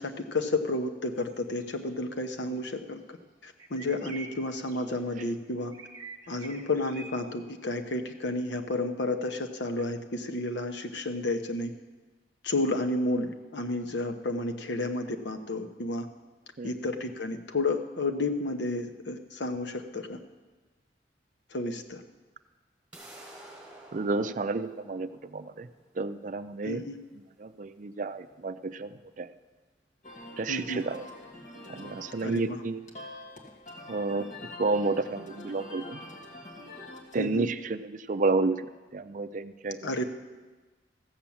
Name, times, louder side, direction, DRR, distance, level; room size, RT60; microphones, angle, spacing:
voice 1, 0.0-3.2 3.4-5.7 6.3-11.7 12.4-16.1 16.6-20.2 21.5-22.0 26.6-27.0 30.5-30.8 32.2-32.6 37.1-37.5 39.8-40.0, left 2 dB, 85° left, 5 dB, 1.0 m, -31 dB
sound 1, 1.2-1.3 1.6-1.9 3.6-4.9 5.7-7.1, right 4 dB, 25° right, 1.8 m, -46 dB
sound 2, 22.9-28.9, right 1 dB, 10° right, 4.1 m, -52 dB
voice 2, 23.9-25.7 26.0-26.8 27.4-29.3 30.4-31.0 31.7-32.8 33.9-34.3 34.6-36.0 37.1-39.9, right 3 dB, 45° right, 11 dB, 0.5 m, -31 dB
sound 3, 30.0-37.3, left 1 dB, 45° left, 1.7 m, -45 dB
14.5 x 7.3 x 7.1 m, 1.3 s
head